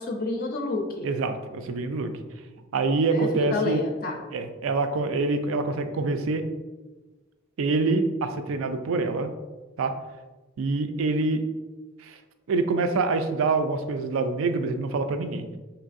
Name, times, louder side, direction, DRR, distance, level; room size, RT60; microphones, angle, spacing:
voice 1, 0.0-1.1 3.1-4.2, left 2 dB, 45° left, 2 dB, 0.4 m, -29 dB
voice 2, 1.0-2.1 2.7-3.8 4.3-6.5 7.6-9.3 9.8-10.0 10.6-11.4 12.0-12.2 12.5-15.4, right 3 dB, 80° right, 8 dB, 0.4 m, -25 dB
4.4 x 3.2 x 2.5 m, 1.2 s
head